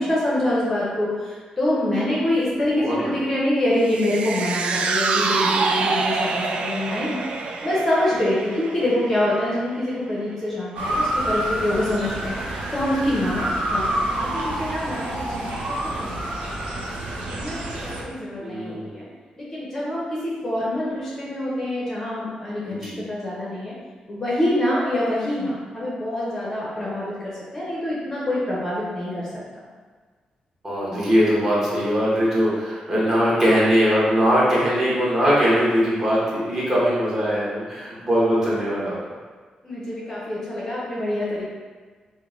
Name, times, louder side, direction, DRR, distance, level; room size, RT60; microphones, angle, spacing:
voice 1, 0.0-16.6 17.3-19.0 19.4-23.7 24.1-29.3 39.6-41.5, left 1 dB, 20° left, -7 dB, 0.7 m, -26 dB
voice 2, 2.8-3.1 18.4-18.9 22.7-23.0 30.6-38.9, equal, 20° right, -8 dB, 1.2 m, -21 dB
sound 1, 3.8-10.3 10.6-10.7, right 4 dB, 55° right, 0.3 m, -26 dB
Motor vehicle (road) / Siren, 10.8-18.0, right 1 dB, 70° right, 0.8 m, -28 dB
5.0 x 2.1 x 3.6 m, 1.5 s
wide cardioid pair, 175°, 2 cm